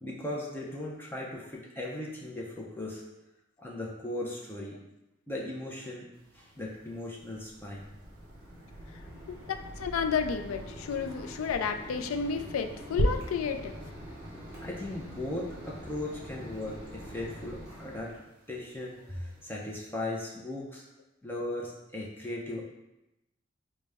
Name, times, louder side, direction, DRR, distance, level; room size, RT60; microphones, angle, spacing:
voice 1, 0.0-3.0 3.6-4.8 5.3-6.1 6.3-7.9 14.6-18.1 18.5-20.8 21.2-22.6, left 1 dB, 10° left, -3 dB, 0.5 m, -37 dB
sound 1, 6.1-19.8, right 1 dB, 90° right, 0.5 m, -41 dB
Mechanisms, 7.2-18.2, equal, 30° right, 1.1 m, -45 dB
voice 2, 9.5-13.8, left 6 dB, 80° left, 7 dB, 0.3 m, -31 dB
4.9 x 2.1 x 3.4 m, 0.91 s
head